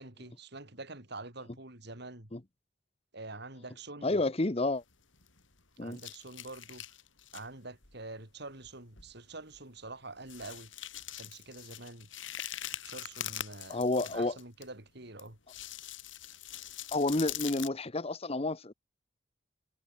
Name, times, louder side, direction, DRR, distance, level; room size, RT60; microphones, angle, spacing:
voice 1, 0.0-2.3 3.1-4.2 5.8-6.8 7.3-10.7 11.2-12.1 12.8-15.4, right 2 dB, 60° right, 4.6 m, -46 dB
voice 2, 4.0-4.8 5.8-6.0 13.7-14.4 16.9-18.7, left 2 dB, 30° left, 1.0 m, -30 dB
sound 1, 4.8-5.6 5.9-7.5 7.8-8.0 8.6-8.7 9.0-9.2 9.5-9.6 10.2-14.6 15.2-17.7, left 12 dB, 80° left, 6.2 m, -43 dB
head